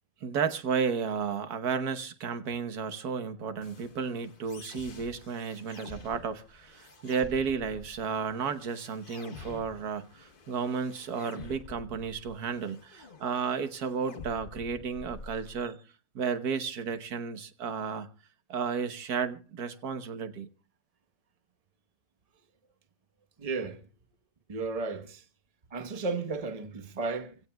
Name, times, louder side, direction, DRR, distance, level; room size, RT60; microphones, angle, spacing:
voice 1, 0.2-15.8 16.1-18.1 18.5-20.5, right 6 dB, 75° right, 1.6 m, -33 dB
sound 1, 3.6-15.6, left 4 dB, 35° left, 1.1 m, -49 dB
voice 2, 23.4-23.9 24.5-25.3 25.7-27.4, right 4 dB, 25° right, 1.1 m, -34 dB
25.5 x 16.5 x 2.3 m
omnidirectional pair, 1.7 m